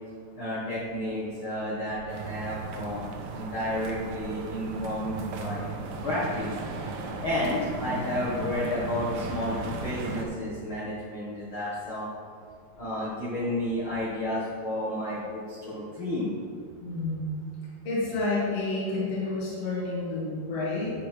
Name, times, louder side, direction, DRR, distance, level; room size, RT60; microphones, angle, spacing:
voice 1, 0.4-3.0 3.3-5.7 6.0-6.5 7.2-12.1 12.8-16.3, left 1 dB, 80° left, -8 dB, 1.1 m, -31 dB
sound 1, 2.1-10.2, right 3 dB, 75° right, 2.0 m, -36 dB
voice 2, 16.8-17.3 17.8-20.9, left 2 dB, 45° left, -7 dB, 2.2 m, -29 dB
9.5 x 6.4 x 4.5 m, 2.2 s
omnidirectional pair, 5.0 m